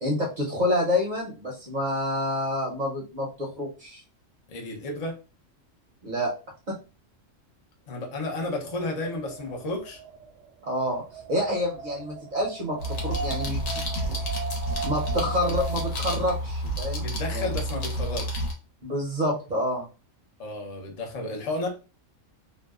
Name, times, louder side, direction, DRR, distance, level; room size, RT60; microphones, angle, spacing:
voice 1, 0.0-4.0 6.0-6.3 6.7-6.8 10.7-11.0 11.3-14.2 14.8-17.5 18.8-19.9, left 1 dB, 50° right, -3 dB, 0.6 m, -28 dB
voice 2, 4.5-5.2 7.9-10.0 17.0-18.5 20.4-21.7, left 2 dB, 45° left, 1 dB, 0.5 m, -32 dB
Wind, 8.2-16.2, right 5 dB, 75° right, 1.0 m, -39 dB
sound 1, 12.8-18.5, equal, 80° left, 1.1 m, -30 dB
2.6 x 2.1 x 2.3 m, 0.32 s
omnidirectional pair, 1.4 m